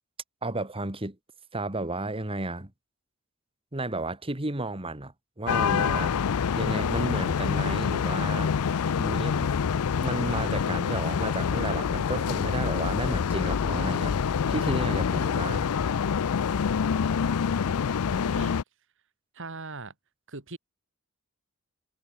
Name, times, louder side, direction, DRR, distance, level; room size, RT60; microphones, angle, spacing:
voice 1, 0.4-1.2 1.5-2.7 3.7-9.5 10.0-14.2 14.5-15.7, right 2 dB, 25° right, 2.3 m, -33 dB
sound 1, 5.5-18.6, left 6 dB, 85° left, 0.5 m, -26 dB
voice 2, 18.1-18.6 19.3-19.9 20.3-20.6, right 3 dB, 60° right, 3.1 m, -40 dB
head